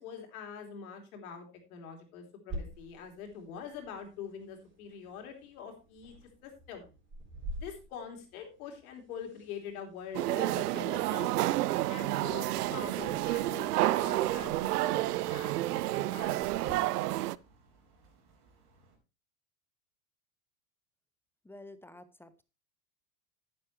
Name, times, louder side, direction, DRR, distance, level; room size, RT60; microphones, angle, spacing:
voice 1, 0.0-6.1 6.4-6.9 7.6-11.3 11.9-16.5, left 7 dB, 65° left, 3 dB, 3.3 m, -45 dB
sound 1, 2.5-16.7, right 1 dB, 25° right, 4.2 m, -49 dB
sound 2, 10.1-17.4, right 16 dB, 80° right, 0.5 m, -30 dB
sound 3, 12.6-19.0, right 3 dB, 60° right, 4.6 m, -64 dB
voice 2, 21.4-22.4, left 2 dB, 5° left, 13 dB, 0.6 m, -50 dB
10.0 x 9.6 x 3.2 m, 0.29 s
hypercardioid pair, 100°, 45 cm